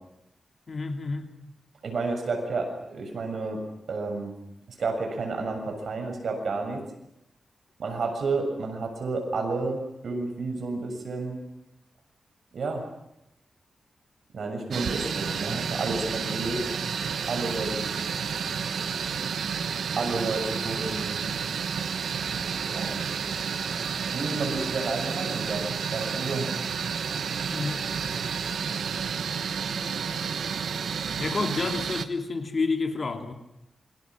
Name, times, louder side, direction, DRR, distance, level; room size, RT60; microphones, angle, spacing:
voice 1, 0.7-1.3 27.5-27.9 31.2-33.3, left 4 dB, 45° left, 2.8 m, -29 dB
voice 2, 1.8-3.6 3.9-4.3 4.8-6.8 7.8-11.4 12.5-12.8 14.3-16.6 17.3-17.9 20.0-21.3 22.7-22.9 24.1-26.5, right 3 dB, 70° right, 7.0 m, -31 dB
sound 1, 14.7-32.1, right 6 dB, 85° right, 1.2 m, -30 dB
27.5 x 25.0 x 6.2 m
wide cardioid pair, 125°, 0 cm